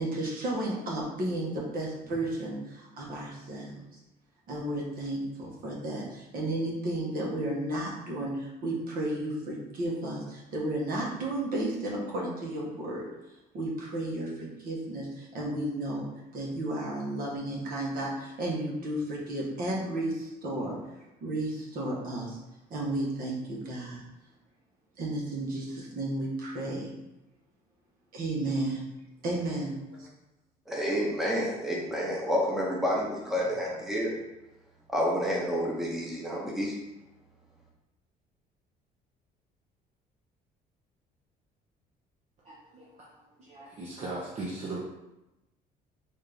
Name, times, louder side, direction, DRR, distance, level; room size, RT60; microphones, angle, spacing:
voice 1, 0.0-3.7 4.5-13.1 13.5-16.1 16.3-20.8 21.2-22.4 22.7-24.0 25.0-26.9 28.1-28.8 29.2-29.7, right 1 dB, 60° right, -3 dB, 1.2 m, -33 dB
voice 2, 30.7-34.1 34.9-36.7, equal, ahead, -3 dB, 0.8 m, -29 dB
voice 3, 42.4-44.8, right 2 dB, 40° right, -5 dB, 0.8 m, -39 dB
4.1 x 2.6 x 3.4 m, 0.96 s
cardioid pair, 110°, 17 cm